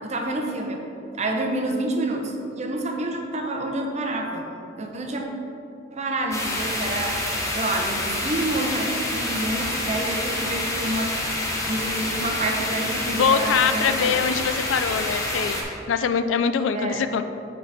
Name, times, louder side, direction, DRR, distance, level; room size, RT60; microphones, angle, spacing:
voice 1, 0.0-0.8 1.1-4.5 4.8-5.3 5.9-7.2 7.5-11.2 11.7-14.2 16.7-17.1, right 1 dB, 35° right, 2 dB, 0.7 m, -28 dB
sound 1, 6.3-15.6, left 1 dB, 15° left, 0.9 m, -27 dB
voice 2, 13.1-15.6 15.9-17.2, left 6 dB, 85° left, 10 dB, 0.4 m, -23 dB
9.5 x 4.0 x 3.4 m, 2.7 s
head